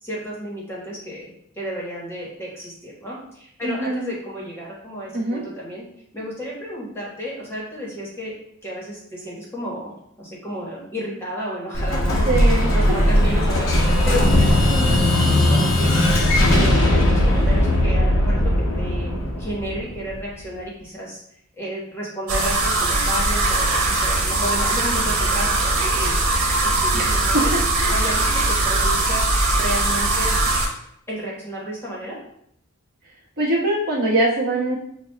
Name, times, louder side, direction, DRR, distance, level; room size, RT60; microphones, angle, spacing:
voice 1, 0.0-5.8 6.1-8.3 8.6-9.9 10.2-12.3 12.7-15.9 16.5-18.5 18.8-19.1 19.4-21.2 21.6-26.1 26.6-27.5 27.9-30.4 31.1-32.2, equal, 10° left, -5 dB, 1.2 m, -32 dB
voice 2, 3.6-4.1 5.1-5.4 12.3-12.7 26.9-27.4 27.8-27.9 33.4-34.8, right 2 dB, 45° right, -7 dB, 1.2 m, -23 dB
Explosion, 11.7-20.4, left 1 dB, 65° left, 0.8 m, -18 dB
sound 1, 22.3-30.7, right 2 dB, 85° right, 1.0 m, -20 dB
6.8 x 2.3 x 2.2 m, 0.71 s
head